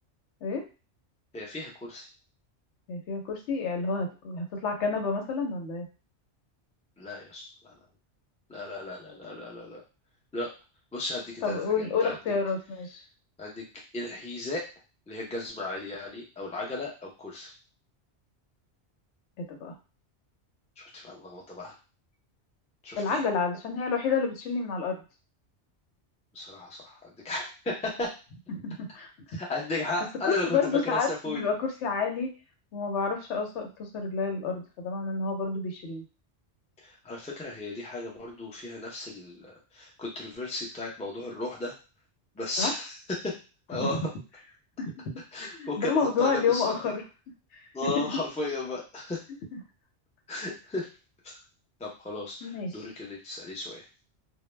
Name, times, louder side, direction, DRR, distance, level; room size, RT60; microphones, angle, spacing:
voice 1, 1.3-2.1 7.0-7.7 8.5-9.8 10.3-10.5 10.9-12.4 13.4-13.6 13.9-14.6 15.1-17.5 20.8-21.8 22.8-23.2 26.3-28.1 29.3-31.4 36.8-41.7 42.4-43.0 43.2-43.3 43.7-44.0 45.3-46.8 47.7-49.2 50.3-50.9 51.2-51.4 51.8-53.8, left 2 dB, 10° left, -2 dB, 0.3 m, -35 dB
voice 2, 2.9-5.9 11.4-13.0 19.4-19.7 23.0-25.0 28.5-29.1 30.2-32.3 32.7-36.0 42.6-42.7 43.8-44.0 44.8-44.9 45.4-47.0 47.8-48.0 49.5-49.6 52.4-52.8, left 5 dB, 85° left, 3 dB, 1.0 m, -29 dB
2.2 x 2.0 x 3.1 m, 0.32 s
omnidirectional pair, 1.2 m